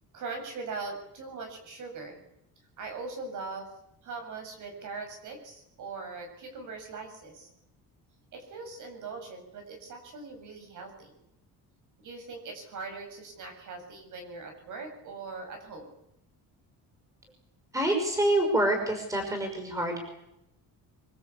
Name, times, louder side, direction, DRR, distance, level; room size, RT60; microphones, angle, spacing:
voice 1, 0.1-2.2 2.8-3.7 4.0-7.5 8.3-11.1 12.0-15.9, right 4 dB, 55° right, 4 dB, 7.9 m, -41 dB
voice 2, 17.7-20.0, right 1 dB, 10° right, 5 dB, 5.9 m, -26 dB
24.5 x 24.0 x 8.6 m, 0.85 s
cardioid pair, 170°, 36 cm